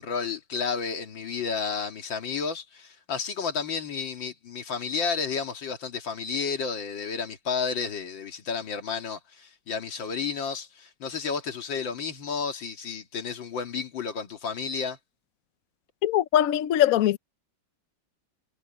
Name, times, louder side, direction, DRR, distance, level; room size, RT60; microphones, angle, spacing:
voice 1, 0.0-15.0, left 5 dB, 80° left, 2.7 m, -31 dB
voice 2, 16.0-17.2, left 12 dB, 65° left, 0.9 m, -21 dB
omnidirectional pair, 2.0 m